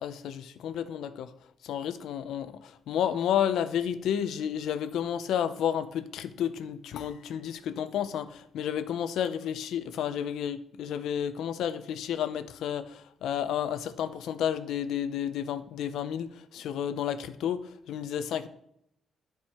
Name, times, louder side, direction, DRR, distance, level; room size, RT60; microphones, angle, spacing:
voice 1, 0.0-1.3 1.6-18.5, left 9 dB, 85° left, 0.6 m, -31 dB
11.0 x 4.8 x 4.3 m
cardioid pair, 170°, 0 cm